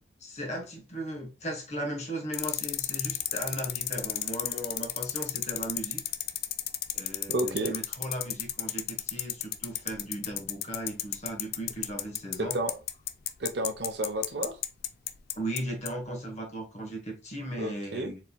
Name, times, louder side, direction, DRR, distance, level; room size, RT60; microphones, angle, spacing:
voice 1, 0.0-6.0 6.9-12.6 15.3-18.2, right 1 dB, 35° left, 1.2 m, -37 dB
sound 1, 2.3-15.6 15.9-16.0, left 13 dB, 50° left, 0.4 m, -31 dB
voice 2, 7.3-7.7 12.4-12.7 13.4-14.6 17.6-18.1, right 1 dB, 55° right, 0.7 m, -31 dB
4.3 x 4.1 x 2.2 m
head